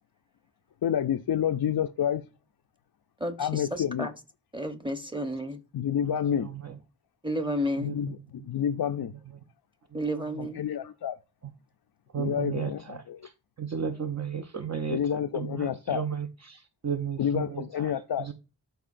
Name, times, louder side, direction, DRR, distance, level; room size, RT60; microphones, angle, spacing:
voice 1, 0.8-2.2 3.4-4.1 5.7-6.5 7.8-8.2 8.4-9.1 10.4-11.2 12.2-13.3 14.9-16.0 17.2-18.3, left 9 dB, 70° left, 0.5 m, -29 dB
voice 2, 3.2-4.1 4.5-5.6 7.2-7.9 9.9-10.6, equal, 15° right, 0.9 m, -31 dB
voice 3, 6.4-6.8 7.8-8.5 9.3-9.4 9.9-10.5 11.4-11.5 12.1-13.3 13.6-17.9 18.2-18.3, right 7 dB, 45° right, 0.7 m, -35 dB
12.5 x 4.7 x 2.5 m
wide cardioid pair, 80°, 38 cm